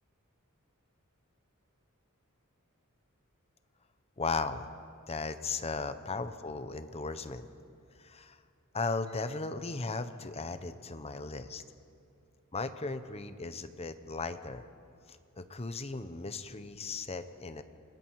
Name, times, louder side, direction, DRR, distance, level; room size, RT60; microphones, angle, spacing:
voice 1, 4.2-4.7 5.1-7.5 8.0-8.4 8.7-11.6 12.5-14.7 15.1-17.6, left 3 dB, 30° left, 11 dB, 0.9 m, -36 dB
29.0 x 19.0 x 4.7 m, 2.5 s
head